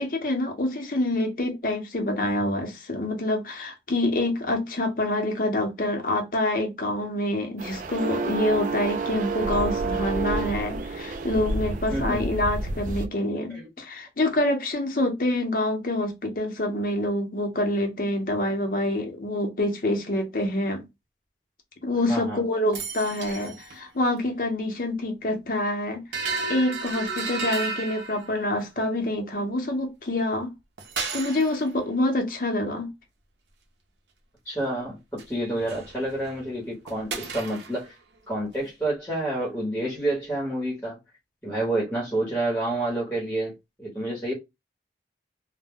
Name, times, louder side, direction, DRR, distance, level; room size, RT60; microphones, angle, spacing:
voice 1, 0.0-20.8 21.8-30.5 31.1-32.9, left 1 dB, 50° left, 0.7 m, -26 dB
sound 1, 7.6-13.1, right 3 dB, 45° right, 0.3 m, -29 dB
voice 2, 11.9-12.3 13.5-13.7 22.1-22.4 34.5-37.9 38.3-41.0 41.4-44.3, right 1 dB, 10° left, 0.9 m, -29 dB
sound 2, 22.7-23.8 24.1-24.2 26.1-28.6 30.8-31.7 35.2-35.3 35.6-36.5 36.9-37.9, right 4 dB, 85° right, 0.6 m, -33 dB
2.2 x 2.1 x 3.5 m
head